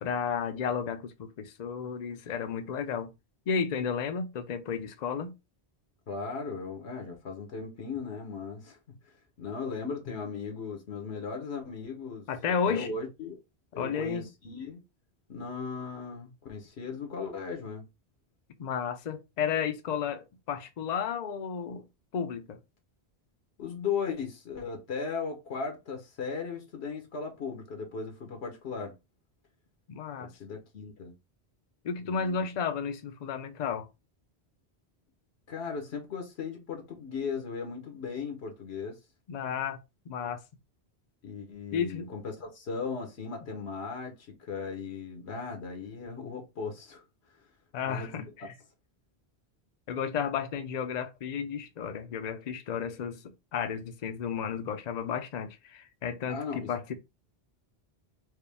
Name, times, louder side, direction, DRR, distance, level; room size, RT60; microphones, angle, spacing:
voice 1, 0.0-3.1 3.5-5.3 12.3-12.9 13.8-14.3 18.6-21.9 22.1-22.6 29.9-30.3 31.8-33.9 39.3-39.8 40.1-40.4 41.7-42.1 47.7-48.5 49.9-53.2 53.5-57.0, left 7 dB, 50° left, 0.6 m, -32 dB
voice 2, 6.1-8.8 9.4-13.4 13.7-14.8 15.3-17.8 23.6-29.0 30.2-31.1 32.0-32.4 35.5-39.0 41.2-47.0 47.9-48.5 56.3-56.7, left 5 dB, 75° left, 1.2 m, -37 dB
4.6 x 2.2 x 3.4 m
omnidirectional pair, 1.1 m